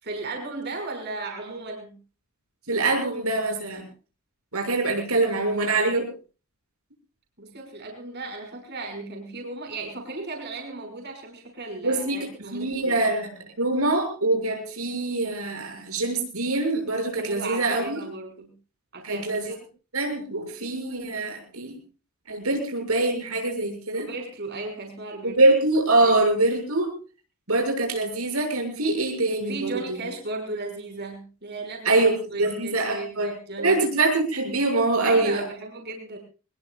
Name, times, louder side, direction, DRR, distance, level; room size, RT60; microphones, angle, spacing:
voice 1, 0.0-2.0 7.4-13.0 17.2-18.5 18.9-19.3 23.9-25.4 26.0-26.2 29.4-32.0 32.3-33.8 35.0-36.2, right 3 dB, 50° right, 3 dB, 5.9 m, -35 dB
voice 2, 2.7-3.8 4.5-6.1 11.8-18.0 19.0-19.5 19.9-21.8 22.3-24.1 25.2-26.9 27.5-30.0 31.9-33.3 33.6-35.4, right 2 dB, 90° right, 4 dB, 7.0 m, -24 dB
24.0 x 21.0 x 2.4 m, 0.36 s
head